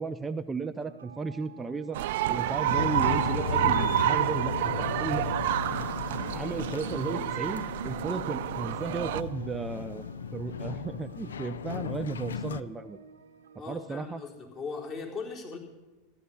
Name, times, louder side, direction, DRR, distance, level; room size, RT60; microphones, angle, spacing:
voice 1, 0.0-2.0 2.3-5.2 6.3-10.0 10.3-13.0 13.7-14.2, right 4 dB, 15° right, 8 dB, 0.6 m, -34 dB
sound 1, 0.6-14.3, right 6 dB, 90° right, 0.9 m, -52 dB
sound 2, 1.9-9.2, right 13 dB, 70° right, 0.5 m, -29 dB
sound 3, 2.7-12.6, left 6 dB, 85° left, 0.5 m, -35 dB
voice 2, 13.6-15.6, left 4 dB, 35° left, 0 dB, 4.0 m, -38 dB
14.0 x 11.5 x 7.2 m, 1.2 s
hypercardioid pair, 95°, 0 cm